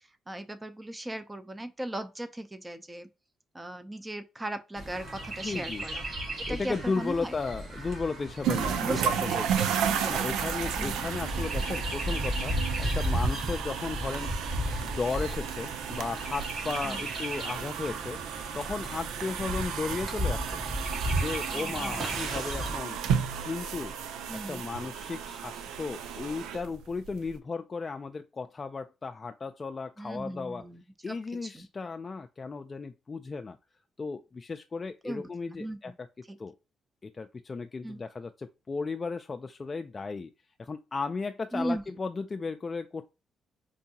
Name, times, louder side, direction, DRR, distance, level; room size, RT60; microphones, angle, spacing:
voice 1, 0.3-3.1 3.5-6.0 6.4-7.3 8.8-9.5 9.9-10.4 10.8-11.1 16.8-17.0 21.5-22.1 24.3-24.6 30.0-31.2 31.4-31.7 35.0-35.9 36.3-36.4 37.8-38.0 41.5-41.8, right 1 dB, 15° right, 0.5 m, -38 dB
Chirp tweet, 4.8-22.8, right 1 dB, 50° right, 2.0 m, -35 dB
voice 2, 5.4-5.9 6.5-9.7 10.1-14.3 14.8-18.2 18.5-20.6 21.2-23.0 23.4-23.9 24.5-30.6 31.0-33.6 34.0-36.1 36.4-36.6 37.0-40.3 40.6-43.1, left 4 dB, 30° left, 0.3 m, -35 dB
sound 1, 8.4-27.3, right 8 dB, 90° right, 0.4 m, -33 dB
4.5 x 2.7 x 2.8 m
cardioid pair, 90°, 0 cm